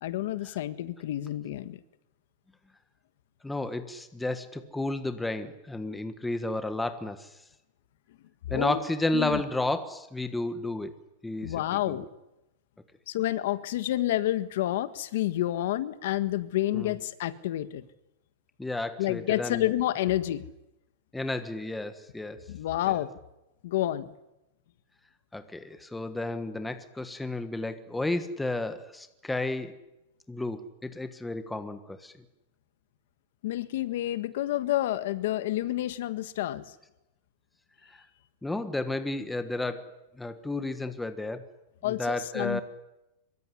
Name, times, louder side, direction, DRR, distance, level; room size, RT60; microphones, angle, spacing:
voice 1, 0.0-1.8 8.5-8.8 9.1-9.4 11.4-12.0 13.1-17.9 19.0-20.4 22.5-23.1 23.6-24.1 33.4-36.6 41.8-42.6, left 14 dB, 55° left, 13 dB, 1.6 m, -29 dB
voice 2, 3.4-7.3 8.5-10.9 11.2-12.0 16.7-16.9 18.6-19.7 21.1-22.4 22.9-23.0 25.3-29.7 30.3-32.1 38.4-41.4 41.8-42.6, left 2 dB, 5° left, 9 dB, 1.4 m, -32 dB
25.5 x 23.5 x 10.0 m, 0.92 s
supercardioid pair, 175°, 0 cm